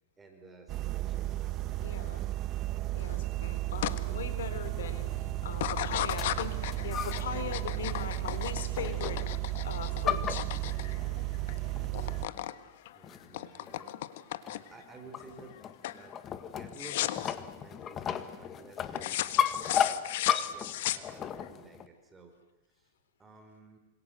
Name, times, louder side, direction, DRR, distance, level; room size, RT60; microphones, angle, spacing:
voice 1, 0.2-1.3 12.9-14.0 14.7-15.5 15.9-16.2 16.5-20.0 20.5-22.3 22.7-22.9 23.2-23.8, right 3 dB, 15° right, 4 dB, 4.5 m, -53 dB
sound 1, 0.7-12.3, right 16 dB, 35° right, 1.2 m, -34 dB
voice 2, 1.8-2.2 2.9-9.2 9.6-10.4, left 7 dB, 80° left, 10 dB, 4.5 m, -40 dB
sound 2, 3.8-4.0 4.4-4.9 5.5-11.6 11.8-12.6 12.9-14.8 15.3-15.6 15.8-16.1 16.7-17.3 19.0-21.5, left 14 dB, 60° left, 1.5 m, -35 dB
sound 3, 6.1-7.4 7.7-8.1 8.8-9.4 9.7-11.0 11.8-11.9 12.3-12.4 13.0-13.4 13.7-13.9 14.4-21.9, left 9 dB, 25° left, 1.7 m, -34 dB
27.5 x 26.5 x 8.0 m, 0.96 s
hypercardioid pair, 140°, 0 cm